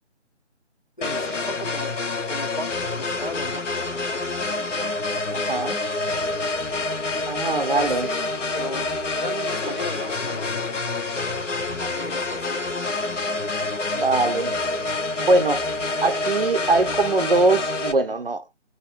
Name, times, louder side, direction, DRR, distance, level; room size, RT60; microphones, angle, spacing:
sound 1, 1.0-17.9, left 2 dB, 90° left, 0.9 m, -27 dB
voice 1, 1.0-2.0 2.3-2.7 3.0-4.2 7.7-11.3 11.8-12.6, left 1 dB, 40° left, 0.4 m, -36 dB
voice 2, 5.3-5.8 7.3-8.1 13.9-14.6 15.2-15.7 16.0-18.4, right 2 dB, 50° right, 0.5 m, -22 dB
2.8 x 2.6 x 2.8 m
figure-of-eight pair, 175°, 36 cm